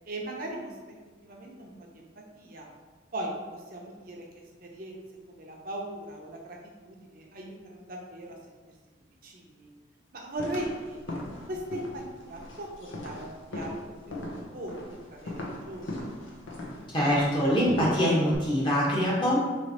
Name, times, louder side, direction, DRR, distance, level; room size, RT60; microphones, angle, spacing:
voice 1, 0.0-0.8 1.2-2.1 2.4-2.7 3.1-4.2 4.6-5.0 5.3-8.4 9.2-9.7 10.1-11.2 11.5-13.8 14.1-16.1, right 1 dB, 45° right, -1 dB, 0.7 m, -39 dB
sound 1, 10.4-18.4, left 1 dB, 80° left, 0.7 m, -39 dB
voice 2, 16.9-19.4, equal, 25° left, -6 dB, 1.0 m, -24 dB
3.3 x 3.1 x 4.1 m, 1.4 s
head